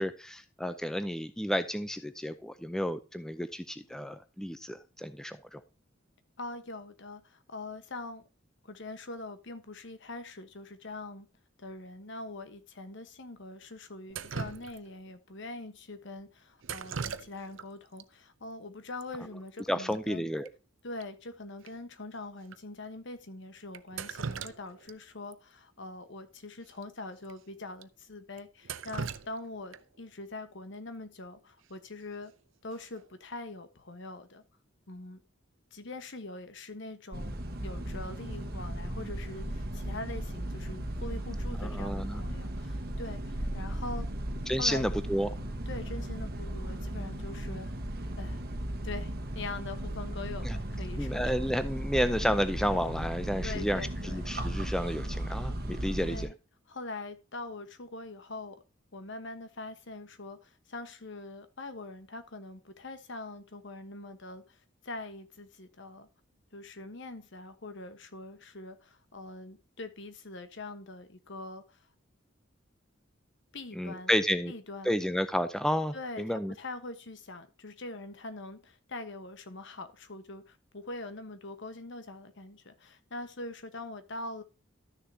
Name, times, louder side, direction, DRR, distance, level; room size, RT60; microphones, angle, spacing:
voice 1, 0.0-5.6 19.7-20.5 41.6-42.2 44.5-45.3 50.4-50.6 51.0-56.3 73.7-74.5 74.8-76.5, equal, 5° left, 0.5 m, -31 dB
voice 2, 6.4-8.2 8.6-11.3 11.6-20.3 20.8-32.3 32.6-34.4 34.9-35.2 35.7-44.1 44.6-44.9 45.7-47.8 48.2-48.4 48.8-51.3 53.4-54.3 55.7-56.3 56.7-58.6 58.9-66.1 66.5-71.8 73.5-74.1 74.4-74.9 75.9-84.4, left 2 dB, 65° left, 1.2 m, -43 dB
Drip, 14.1-15.1 16.6-17.7 18.0-18.1 19.0-19.1 19.4-19.6 19.9-20.0 20.5-20.6 21.0-21.1 21.7-21.8 22.5-22.6 23.7-24.9 25.3-25.4 26.7-26.8 27.2-27.3 27.8-27.9 28.4-30.0 32.0-32.3 32.7-33.1, right 6 dB, 70° right, 0.6 m, -39 dB
sound 1, 37.1-56.3, right 1 dB, 50° right, 1.3 m, -36 dB
13.0 x 6.6 x 2.8 m
head